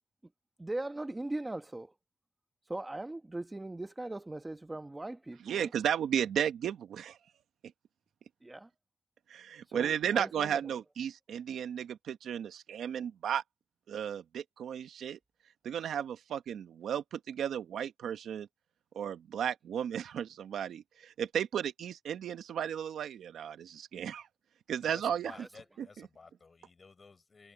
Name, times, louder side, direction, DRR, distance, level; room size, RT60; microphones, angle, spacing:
voice 1, 0.6-1.9 2.7-5.7 8.4-8.7 9.7-10.8 25.3-25.5, right 2 dB, 10° right, 1.0 m, -40 dB
voice 2, 5.5-7.2 9.3-13.4 13.9-15.2 15.6-18.5 18.9-24.3 24.7-25.3, right 9 dB, 90° right, 0.9 m, -34 dB
voice 3, 24.8-27.5, left 4 dB, 30° left, 6.1 m, -54 dB
wide cardioid pair, 175°, 0 cm